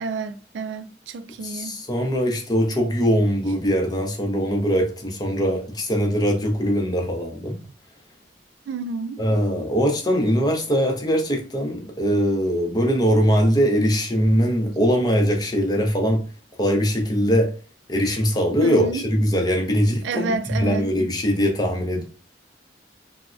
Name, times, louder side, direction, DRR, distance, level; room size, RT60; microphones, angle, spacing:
voice 1, 0.0-1.8 8.7-9.2 18.6-19.0 20.0-20.9, right 4 dB, 85° right, 0.3 m, -29 dB
voice 2, 1.4-7.6 9.2-16.2 16.6-17.5 17.9-22.0, equal, 20° left, 0.6 m, -21 dB
3.3 x 2.0 x 2.4 m
head